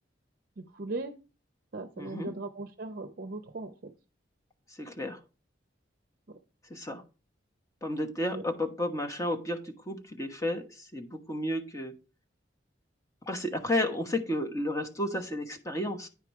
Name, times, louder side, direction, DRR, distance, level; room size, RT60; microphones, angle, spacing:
voice 1, 0.6-1.2 1.7-3.9 6.3-6.4 8.3-8.4, right 2 dB, 50° right, 8 dB, 0.6 m, -38 dB
voice 2, 2.0-2.3 4.7-5.2 6.7-7.0 7.8-11.9 13.2-16.1, left 1 dB, 15° left, 3 dB, 1.1 m, -32 dB
9.7 x 4.8 x 4.7 m, 0.32 s
head